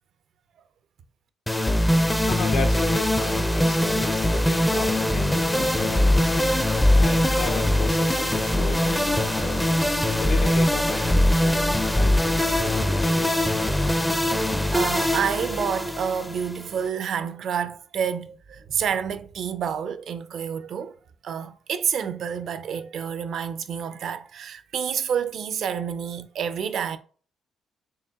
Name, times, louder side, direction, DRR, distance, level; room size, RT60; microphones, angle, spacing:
sound 1, 1.5-16.9, left 1 dB, 10° left, 0.4 m, -22 dB
voice 1, 2.2-6.5 6.9-9.7 10.2-13.4, left 4 dB, 75° left, 0.8 m, -35 dB
voice 2, 14.1-21.0 21.2-27.0, right 7 dB, 65° right, 0.4 m, -29 dB
4.6 x 3.3 x 2.3 m
cardioid pair, 90°, 0 cm